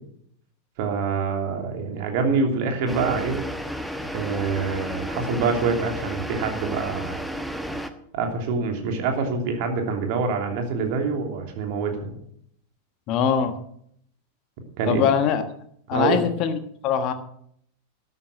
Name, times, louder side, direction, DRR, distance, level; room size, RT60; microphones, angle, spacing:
voice 1, 0.8-3.4 4.1-7.2 8.1-12.1 14.8-15.0 15.9-16.3, right 4 dB, 45° right, 3 dB, 3.0 m, -25 dB
sound 1, 2.9-7.9, equal, ahead, 1.1 m, -32 dB
voice 2, 13.1-13.5 14.9-15.4 15.9-17.1, left 8 dB, 40° left, 8 dB, 1.4 m, -22 dB
13.0 x 9.7 x 6.3 m, 0.69 s
figure-of-eight pair, 90°, 0 cm